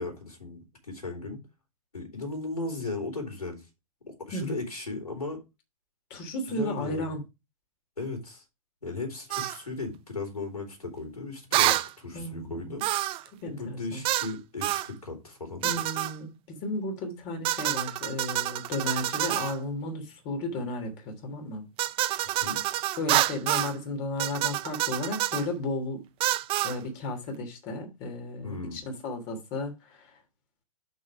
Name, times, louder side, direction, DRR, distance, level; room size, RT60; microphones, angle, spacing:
voice 1, 0.0-1.4 1.9-3.7 4.1-5.4 6.5-7.1 8.0-8.4 8.8-12.9 13.5-15.6 22.4-22.6 28.4-28.8, left 3 dB, 90° left, 4.2 m, -36 dB
voice 2, 6.1-7.2 12.1-12.8 13.4-14.0 15.6-21.6 22.2-22.4 23.0-26.0 26.6-30.2, left 2 dB, 40° left, 3.2 m, -34 dB
sound 1, 9.3-9.6 11.5-11.9 12.8-13.3 14.0-14.3 14.6-14.9 15.6-16.1 17.4-19.6 21.8-23.8 24.2-25.5 26.2-26.8, right 16 dB, 30° right, 0.6 m, -27 dB
6.4 x 5.7 x 4.9 m
hypercardioid pair, 115°, 19 cm